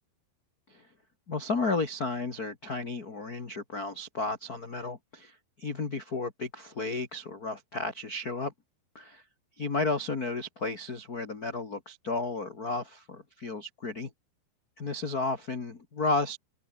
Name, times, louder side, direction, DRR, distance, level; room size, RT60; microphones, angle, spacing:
voice 1, 1.3-8.5 8.9-9.2 9.6-14.1 14.8-16.4, left 3 dB, 35° left, 1.5 m, -33 dB
open air
omnidirectional pair, 5.1 m